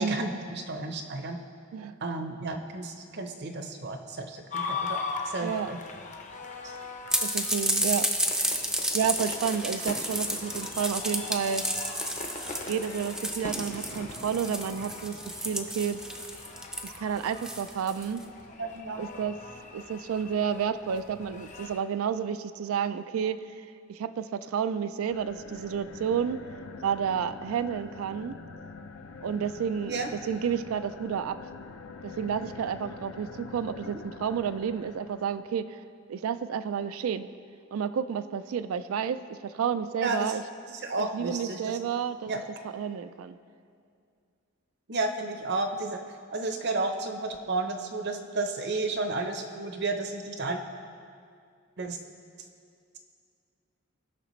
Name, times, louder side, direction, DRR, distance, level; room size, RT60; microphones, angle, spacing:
voice 1, 0.0-1.4 2.0-5.0 5.3-5.8 6.6-6.8 18.6-19.0 29.9-30.1 40.0-40.4 40.7-41.8 42.3-42.4 44.9-46.0 46.3-50.6 51.8-52.0, right 3 dB, 55° right, 5 dB, 0.7 m, -32 dB
sound 1, 4.5-21.8, left 4 dB, 35° left, 0.7 m, -40 dB
sound 2, 7.1-18.2, right 1 dB, 5° right, 0.5 m, -31 dB
voice 2, 7.2-8.1 8.9-11.6 12.7-16.0 16.8-18.2 19.0-19.4 19.7-26.4 26.8-28.4 29.2-31.4 32.0-35.8 36.1-37.3 37.7-40.4 41.0-42.3 42.7-43.4, right 7 dB, 85° right, 12 dB, 0.3 m, -31 dB
sound 3, 25.0-35.5, left 4 dB, 80° left, 0.5 m, -45 dB
17.0 x 5.9 x 3.1 m, 2.3 s
head